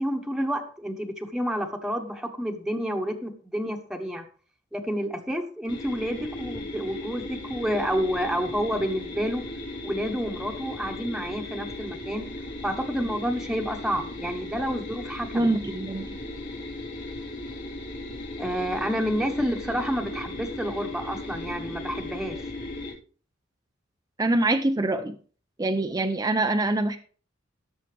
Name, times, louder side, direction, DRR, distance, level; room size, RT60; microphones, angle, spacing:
voice 1, 0.0-4.2 4.7-9.4 9.8-12.2 12.6-15.5 18.4-22.4, equal, 5° right, 2 dB, 1.2 m, -29 dB
sound 1, 5.7-22.9, left 2 dB, 65° left, 3.9 m, -37 dB
voice 2, 15.3-16.1 24.2-25.2 25.6-27.0, right 2 dB, 20° right, 5 dB, 0.5 m, -24 dB
17.5 x 7.2 x 3.4 m, 0.42 s
head